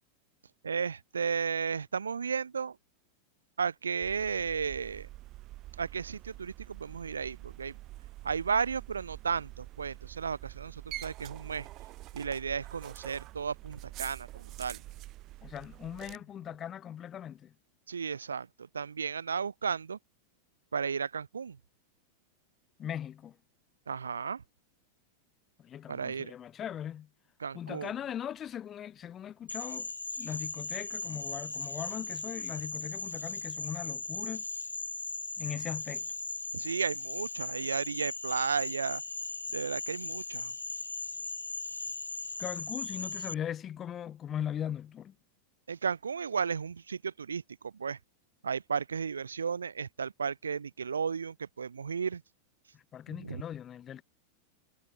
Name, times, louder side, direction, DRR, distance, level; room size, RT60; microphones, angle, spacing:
voice 1, 0.6-2.8 3.6-5.1 5.8-7.8 8.2-11.7 12.1-14.8 17.9-18.5 18.7-20.0 20.7-21.6 23.9-24.4 25.9-26.3 27.4-27.9 36.5-39.0 39.5-40.5 45.7-48.0 48.4-52.2 53.2-53.4, right 6 dB, 70° right, 3.4 m, -34 dB
sound 1, 4.0-16.2, right 17 dB, 35° right, 3.9 m, -46 dB
voice 2, 15.4-17.5 22.8-23.3 25.6-27.1 27.5-29.9 30.2-34.4 35.4-36.0 42.4-45.1 52.9-54.0, left 10 dB, 25° left, 2.0 m, -39 dB
Frog, 29.5-43.3, left 3 dB, 80° left, 6.7 m, -38 dB
figure-of-eight pair, 90°, 0 cm